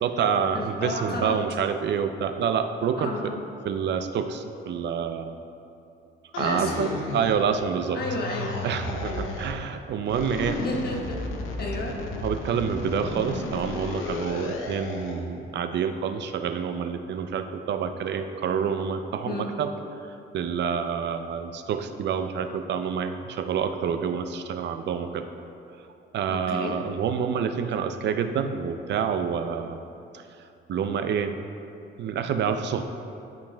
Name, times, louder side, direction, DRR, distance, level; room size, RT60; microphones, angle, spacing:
voice 1, 0.0-3.4 3.6-5.3 6.4-8.0 8.6-10.6 12.2-19.7 20.0-25.3 26.1-29.8 30.1-30.2 30.7-31.3 32.0-32.8, right 7 dB, 60° right, 8 dB, 0.5 m, -28 dB
voice 2, 0.5-1.4 3.0-3.4 6.4-7.0 7.9-8.7 9.0-9.3 10.5-11.2 11.6-11.9 19.2-19.5 26.3-26.8, left 2 dB, 50° left, -1 dB, 1.2 m, -32 dB
sound 1, 6.3-7.6 8.0-9.6 10.1-15.2, left 3 dB, 90° left, 0.7 m, -34 dB
11.5 x 5.3 x 2.3 m, 2.7 s
cardioid pair, 90°, 20 cm